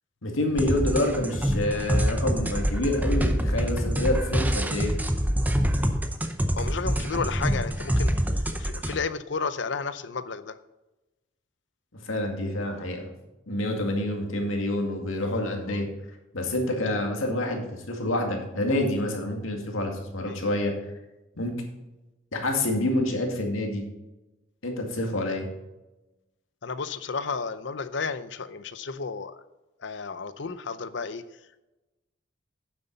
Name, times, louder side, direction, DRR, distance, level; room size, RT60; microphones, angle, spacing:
voice 1, 0.2-4.9 12.0-13.1 13.5-15.9 16.3-20.7 21.4-21.5 22.3-23.8 24.6-25.5, left 1 dB, 85° left, 2 dB, 2.2 m, -27 dB
sound 1, 0.6-9.0, equal, 10° right, 0.6 m, -26 dB
voice 2, 6.6-8.1 8.5-10.6 15.7-15.8 20.2-20.4 26.6-29.4 29.8-31.2, left 5 dB, 60° left, 13 dB, 0.6 m, -32 dB
9.5 x 7.8 x 4.0 m, 1.0 s
head